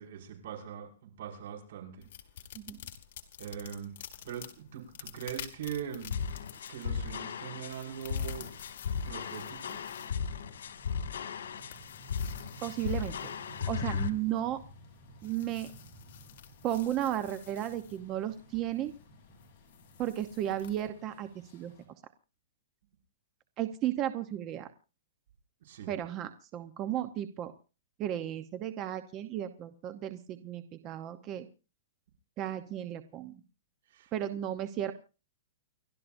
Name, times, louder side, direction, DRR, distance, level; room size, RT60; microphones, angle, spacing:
voice 1, 0.0-2.0 3.4-3.9 4.2-6.2 6.7-8.5 9.0-9.8 25.6-25.9 33.9-34.1, right 8 dB, 60° right, 2 dB, 5.9 m, -41 dB
sound 1, 2.0-20.9, left 10 dB, 50° left, 2.1 m, -51 dB
sound 2, 6.1-14.1, left 6 dB, 80° left, 2.4 m, -36 dB
sound 3, 7.9-21.9, right 1 dB, 25° left, 7.9 m, -55 dB
voice 2, 12.6-13.1 13.7-14.6 15.2-15.7 16.6-18.9 20.0-21.7 23.6-24.7 25.9-27.5 28.0-31.5 32.4-33.3 34.1-34.9, right 12 dB, 25° right, 10 dB, 0.9 m, -34 dB
29.5 x 12.5 x 2.7 m, 0.34 s
hypercardioid pair, 160°, 0 cm